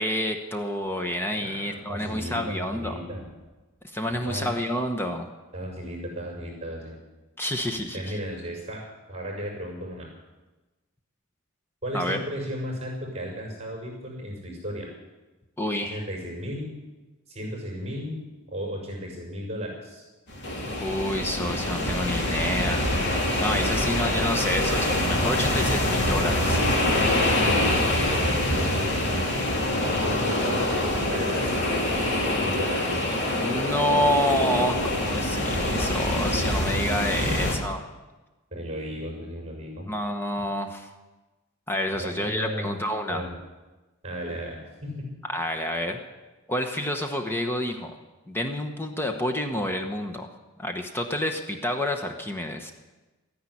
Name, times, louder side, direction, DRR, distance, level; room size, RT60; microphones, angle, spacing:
voice 1, 0.0-2.9 3.9-5.3 7.4-8.2 11.9-12.2 15.6-16.0 20.8-22.8 23.3-26.6 33.3-37.8 39.9-40.9 41.7-43.2 45.3-46.0 46.5-47.9 48.3-50.3 50.6-52.7, left 1 dB, 10° left, 5 dB, 1.0 m, -28 dB
voice 2, 1.4-3.3 4.1-4.5 5.5-7.0 7.7-8.8 9.1-10.1 11.8-14.9 15.8-16.7 17.3-18.2 18.5-20.0 28.1-29.2 29.8-31.4 31.8-33.0 37.2-37.7 38.5-39.9 41.9-42.8 43.1-43.3 44.0-45.1, equal, 30° right, 0 dB, 6.3 m, -35 dB
sound 1, 20.3-37.5, left 1 dB, 55° left, 3.1 m, -25 dB
13.5 x 10.5 x 9.9 m, 1.2 s
head